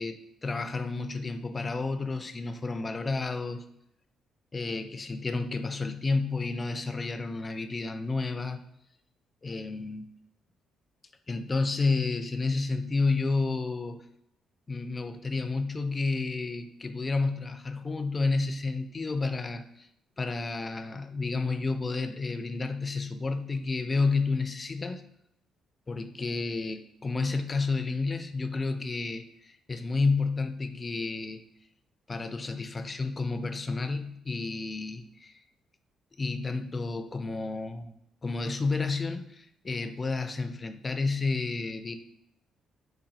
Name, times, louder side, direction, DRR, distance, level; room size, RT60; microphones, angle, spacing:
voice 1, 0.0-3.6 4.5-8.6 9.4-10.1 11.3-14.0 14.7-19.9 20.2-25.0 25.9-31.4 32.1-35.4 36.2-37.9 38.2-41.9, left 3 dB, 30° left, 9 dB, 0.3 m, -30 dB
4.0 x 2.3 x 2.6 m, 0.79 s
cardioid pair, 90°, 0 cm